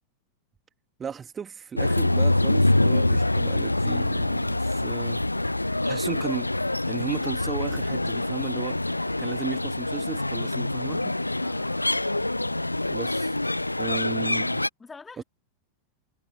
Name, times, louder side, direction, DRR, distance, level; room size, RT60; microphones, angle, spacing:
voice 1, 1.0-5.2 5.7-6.5 6.9-11.2 12.9-13.4 13.8-14.6 15.2-15.3, right 7 dB, 20° right, 2.4 m, -36 dB
sound 1, 1.8-14.7, left 2 dB, 85° left, 0.5 m, -25 dB
voice 2, 11.4-11.9 13.8-14.0 14.8-15.2, left 4 dB, 15° left, 3.8 m, -47 dB
figure-of-eight pair, 90°, 0 cm